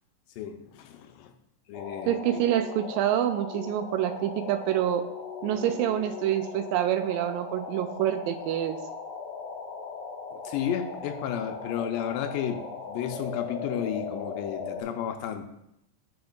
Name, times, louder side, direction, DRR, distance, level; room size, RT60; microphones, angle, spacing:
voice 1, 0.4-1.3 1.7-2.4 10.3-15.4, left 9 dB, 85° left, 7 dB, 2.3 m, -33 dB
sound 1, 1.7-14.8, left 5 dB, 65° left, 1.8 m, -38 dB
voice 2, 2.1-5.0 5.4-8.8, right 11 dB, 90° right, 7 dB, 2.2 m, -27 dB
10.5 x 5.2 x 2.3 m, 0.80 s
omnidirectional pair, 3.9 m